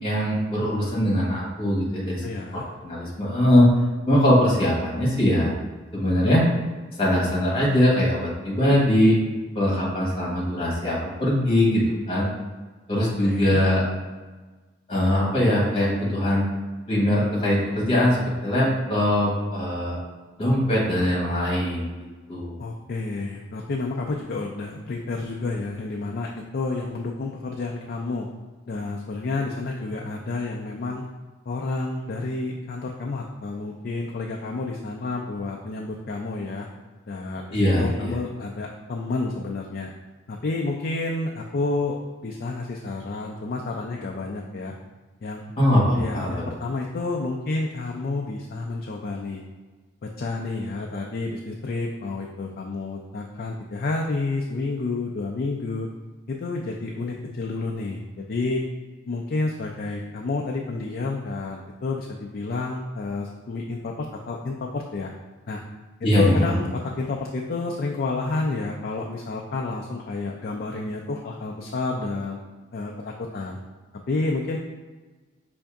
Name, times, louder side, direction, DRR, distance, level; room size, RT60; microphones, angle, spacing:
voice 1, 0.0-2.2 2.5-3.7 4.1-5.5 5.9-6.4 7.0-9.2 9.5-12.3 12.9-13.8 14.9-16.5 16.9-20.0 20.4-21.9 22.3-22.5 37.5-38.1 45.6-46.3 66.0-66.3, left 1 dB, 30° left, -5 dB, 1.4 m, -21 dB
voice 2, 2.1-2.6 13.2-13.6 22.6-28.3 28.7-31.1 31.5-36.7 37.1-39.9 40.3-42.0 42.2-44.7 45.2-45.5 46.0-49.4 50.0-55.9 56.3-58.6 59.1-65.1 65.5-65.6 66.1-72.4 72.7-73.6 74.1-74.6, left 3 dB, 50° left, 0 dB, 0.4 m, -30 dB
5.5 x 2.6 x 3.4 m, 1.3 s
head